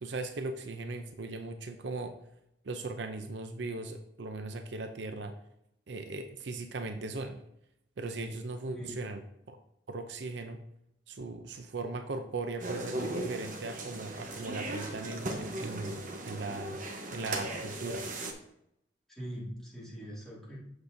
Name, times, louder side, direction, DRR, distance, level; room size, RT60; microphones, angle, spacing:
voice 1, 0.0-2.2 2.6-5.4 5.9-7.4 8.0-9.6 9.9-10.6 11.1-16.8 17.1-18.1, right 3 dB, 70° right, 7 dB, 0.6 m, -38 dB
sound 1, 12.6-18.3, right 2 dB, 45° right, 0.9 m, -38 dB
voice 2, 19.1-20.6, equal, ahead, -7 dB, 2.2 m, -42 dB
7.9 x 6.6 x 2.7 m, 0.79 s
head